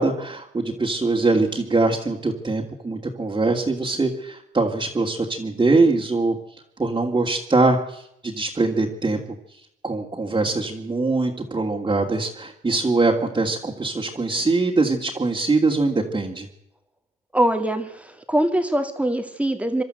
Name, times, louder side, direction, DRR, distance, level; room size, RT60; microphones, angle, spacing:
voice 1, 0.0-6.4 6.8-9.2 9.8-16.5, right 3 dB, 20° right, -2 dB, 2.8 m, -22 dB
voice 2, 17.3-19.8, right 1 dB, 5° right, 6 dB, 2.1 m, -23 dB
26.0 x 12.5 x 8.0 m, 0.77 s
cardioid pair, 90°, 20 cm